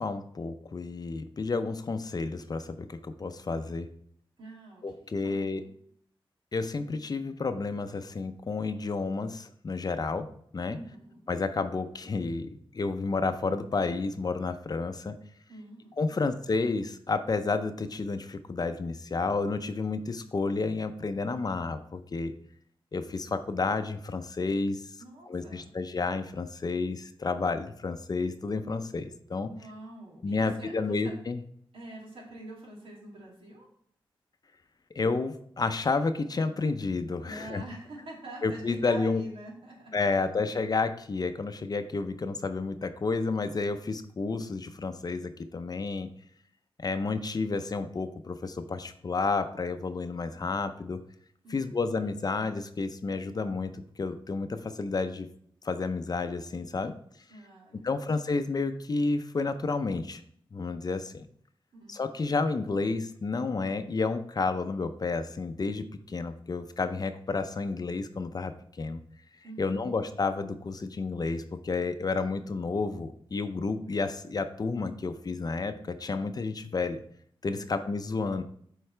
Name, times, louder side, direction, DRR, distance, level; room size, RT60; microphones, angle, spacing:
voice 1, 0.0-3.9 4.8-5.6 6.5-10.3 10.5-10.8 11.3-12.5 12.7-15.2 16.0-22.3 22.9-24.8 25.3-29.5 30.2-31.4 35.0-37.6 38.4-39.2 39.9-46.1 46.8-51.0 51.5-55.3 55.6-57.0 57.8-60.2 60.5-61.3 61.9-69.0 69.6-77.0 77.4-78.4, left 3 dB, 45° left, 9 dB, 0.6 m, -31 dB
voice 2, 4.4-5.7 10.7-11.2 15.5-16.2 25.0-25.7 29.5-31.1 31.7-33.7 37.2-40.1 51.4-51.8 57.3-58.3 61.7-62.2 69.4-69.9 77.5-77.8, right 1 dB, 75° right, -3 dB, 2.5 m, -46 dB
7.8 x 4.7 x 3.3 m, 0.64 s
wide cardioid pair, 80°, 9 cm